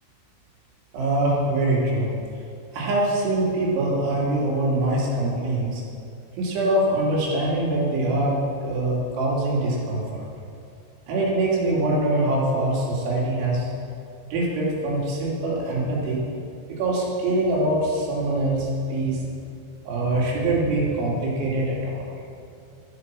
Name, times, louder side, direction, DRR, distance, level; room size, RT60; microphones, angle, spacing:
voice 1, 0.9-2.1 2.7-5.8 6.4-10.3 11.1-13.7 14.3-16.2 16.8-19.2 19.9-22.0, right 2 dB, 75° right, -4 dB, 4.8 m, -23 dB
12.5 x 11.5 x 6.0 m, 2.5 s
omnidirectional pair, 5.6 m